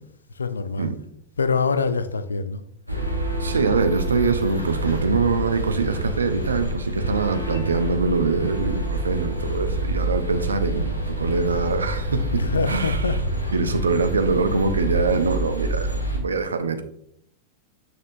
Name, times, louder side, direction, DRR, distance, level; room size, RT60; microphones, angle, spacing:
voice 1, 0.4-0.9 1.4-2.6 12.4-13.5, left 4 dB, 75° left, 0.4 m, -25 dB
Westminster - Big Ben, 2.9-16.2, right 1 dB, 90° right, 1.0 m, -27 dB
voice 2, 3.4-13.2 13.5-16.8, right 4 dB, 75° right, 0.6 m, -24 dB
6.6 x 6.5 x 2.6 m
figure-of-eight pair, 90°, 0 cm